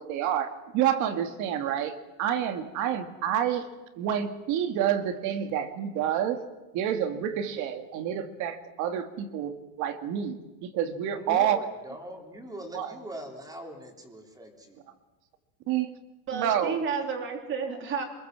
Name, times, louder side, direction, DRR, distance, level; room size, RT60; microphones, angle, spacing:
voice 1, 0.0-3.7 4.0-6.4 6.7-11.6 12.7-12.9 15.7-15.9 16.3-16.8, right 9 dB, 45° right, 8 dB, 2.2 m, -28 dB
voice 2, 11.1-14.8, equal, 10° right, 3 dB, 3.2 m, -41 dB
voice 3, 16.3-18.0, right 6 dB, 25° right, 4 dB, 3.5 m, -31 dB
27.0 x 21.5 x 7.6 m, 1.1 s
cardioid pair, 170°, 43 cm